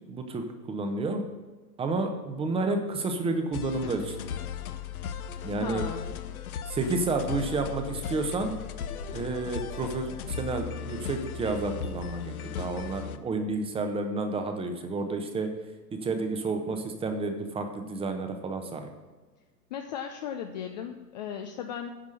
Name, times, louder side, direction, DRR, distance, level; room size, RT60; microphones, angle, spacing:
voice 1, 0.1-1.2 1.8-4.2 5.4-5.8 6.7-8.5 9.1-15.5 16.0-18.9, right 3 dB, 10° right, 6 dB, 0.9 m, -30 dB
sound 1, 3.5-13.2, left 7 dB, 60° left, 0.9 m, -37 dB
voice 2, 5.6-6.1 19.7-21.9, left 8 dB, 30° left, 5 dB, 0.5 m, -36 dB
10.0 x 6.0 x 6.6 m, 1.3 s
figure-of-eight pair, 110°, 49 cm